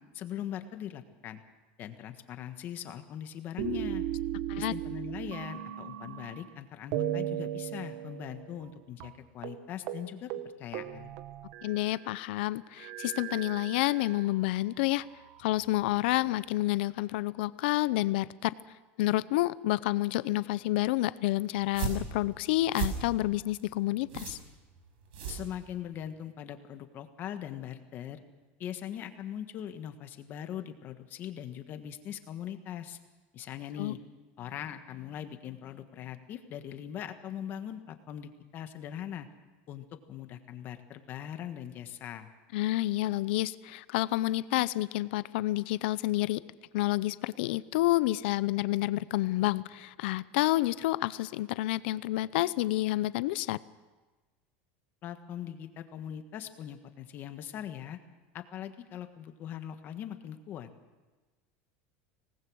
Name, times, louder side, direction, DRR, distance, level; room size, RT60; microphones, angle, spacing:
voice 1, 0.1-1.4 1.8-4.0 4.6-10.3 10.6-11.1 25.3-28.2 28.6-33.0 33.3-34.0 34.4-39.3 39.7-42.3 55.0-58.0 58.3-60.7, left 10 dB, 35° left, 8 dB, 1.5 m, -41 dB
sound 1, 3.6-6.5 6.9-8.7 9.0-9.1 9.4-9.6 9.9-10.0 10.3-12.0 12.8-14.4 15.1-16.0, right 11 dB, 55° right, 1.2 m, -37 dB
voice 2, 11.6-15.0 15.4-18.5 19.0-24.4 33.8-33.9 42.5-46.4 46.7-53.6, left 17 dB, 70° left, 17 dB, 0.7 m, -29 dB
sound 2, 21.6-26.1, right 7 dB, 80° right, 5.9 m, -37 dB
25.5 x 19.0 x 6.3 m, 1.2 s
supercardioid pair, 165°, 6 cm